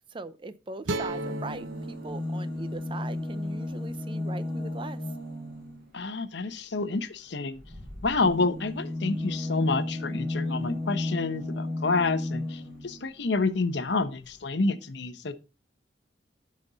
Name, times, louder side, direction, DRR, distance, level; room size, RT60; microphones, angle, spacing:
voice 1, 0.1-5.0 8.4-8.6, right 3 dB, 25° right, 0.5 m, -40 dB
sound 1, 0.8-4.0, right 2 dB, 75° right, 0.6 m, -37 dB
sound 2, 1.0-5.9 7.5-13.0 14.0-14.1 14.3-14.4, left 2 dB, 45° right, 5.3 m, -34 dB
voice 2, 5.9-7.6 8.0-15.3, left 3 dB, 65° left, 0.9 m, -28 dB
12.0 x 5.3 x 4.0 m
head